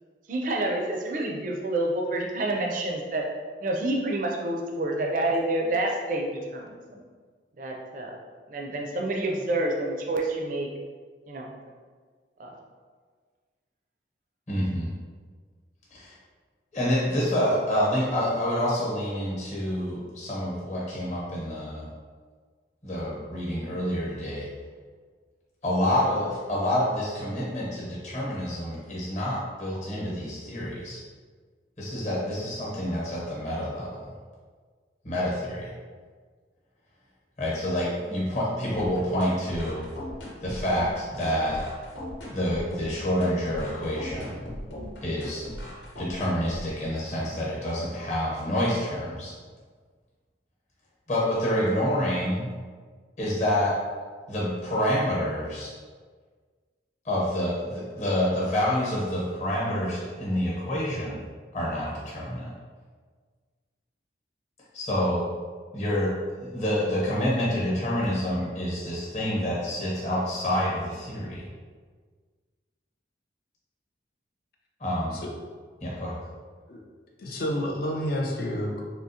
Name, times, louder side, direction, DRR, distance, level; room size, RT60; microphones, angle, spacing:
voice 1, 0.3-3.3 3.6-6.8 7.6-8.1 8.5-10.7 11.3-11.5 12.4-12.5, right 1 dB, 45° right, 0 dB, 0.4 m, -28 dB
voice 2, 14.5-14.9 15.9-16.1 16.7-21.9 22.8-24.5 25.6-31.0 31.8-34.1 35.0-35.7 37.4-39.8 40.4-41.6 42.3-44.4 45.0-45.4 46.0-49.3 51.1-52.5 53.2-53.7 54.3-55.7 57.0-61.2 61.5-62.5 64.7-65.3 65.7-66.1 66.4-71.5 74.8-75.2 75.8-76.2, equal, 40° left, -6 dB, 0.9 m, -27 dB
sound 1, 38.7-46.7, left 1 dB, 75° left, 0.8 m, -39 dB
voice 3, 77.2-78.8, equal, 55° left, 0 dB, 0.4 m, -29 dB
3.5 x 2.7 x 2.7 m, 1.5 s
head